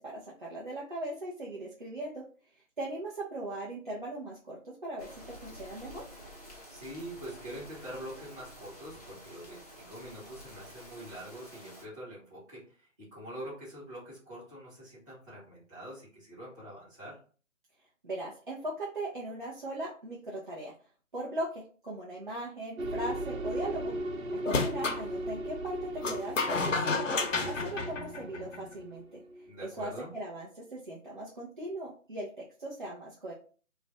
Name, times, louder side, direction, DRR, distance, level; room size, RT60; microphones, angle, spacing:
voice 1, 0.0-2.2 2.8-5.1 5.4-6.0 18.0-20.7 21.1-23.9 24.5-27.1 27.4-29.2 29.6-33.3, right 1 dB, 40° right, -6 dB, 0.5 m, -39 dB
sound 1, 5.0-11.9, equal, 30° left, 0.5 m, -50 dB
voice 2, 6.7-17.2 29.5-30.1, equal, 15° right, -11 dB, 1.0 m, -45 dB
sound 2, 22.8-29.9, right 1 dB, 80° right, 0.7 m, -38 dB
sound 3, 24.4-25.0 26.0-28.7, left 4 dB, 70° left, 0.7 m, -31 dB
2.4 x 2.1 x 3.8 m, 0.40 s
figure-of-eight pair, 165°, 39 cm